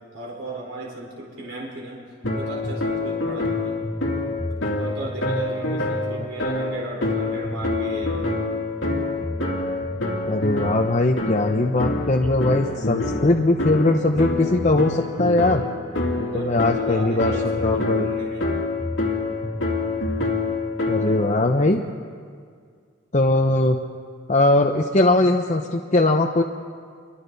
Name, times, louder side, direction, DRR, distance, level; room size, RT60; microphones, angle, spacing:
voice 1, 0.1-2.0 2.3-3.8 4.7-8.3 16.3-18.5, right 1 dB, 65° right, -2 dB, 4.4 m, -35 dB
sound 1, 2.2-21.3, left 2 dB, 65° left, 3.1 m, -26 dB
voice 2, 10.3-15.6 16.2-18.1 20.9-21.8 23.1-23.8 24.3-26.4, left 2 dB, 35° left, 2 dB, 0.8 m, -20 dB
29.5 x 24.5 x 4.1 m, 2.1 s
head